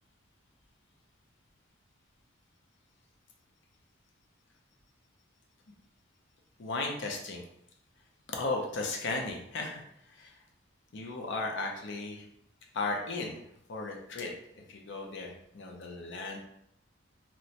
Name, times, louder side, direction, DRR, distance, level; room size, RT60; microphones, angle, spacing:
voice 1, 6.6-7.4 8.3-10.4 10.9-12.2 12.7-13.4 13.7-14.3 14.7-16.4, left 3 dB, 60° left, 1 dB, 0.5 m, -35 dB
3.0 x 2.1 x 2.7 m, 0.73 s
head